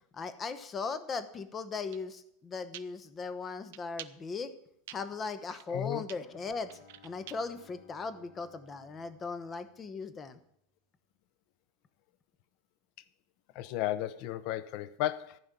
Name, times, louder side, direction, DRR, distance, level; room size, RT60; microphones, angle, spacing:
voice 1, 0.1-4.5 4.9-10.4, left 4 dB, 20° left, 1.0 m, -38 dB
sound 1, 1.9-2.0 2.7-2.8 3.7-4.1 4.9-5.0 5.2-5.8 6.1-7.6, right 16 dB, 70° right, 0.7 m, -46 dB
voice 2, 5.7-6.0 13.5-15.4, left 13 dB, 50° left, 0.7 m, -34 dB
Bowed string instrument, 6.1-10.4, left 5 dB, 85° left, 4.0 m, -61 dB
15.0 x 5.3 x 9.7 m
supercardioid pair, 165°, 0 cm